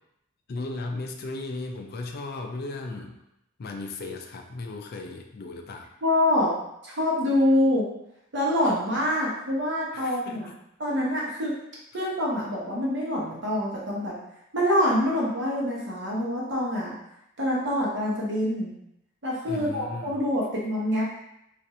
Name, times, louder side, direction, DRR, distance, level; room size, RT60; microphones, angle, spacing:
voice 1, 0.5-3.2 3.6-5.9 9.9-10.5 19.4-20.2, left 2 dB, 50° left, 3 dB, 0.4 m, -36 dB
voice 2, 6.0-6.5 6.8-7.9 8.3-10.5 10.8-11.5 11.9-14.1 14.5-16.9 17.4-18.7 19.2-21.0, left 1 dB, 60° right, -5 dB, 1.0 m, -25 dB
2.6 x 2.5 x 4.2 m, 0.81 s
head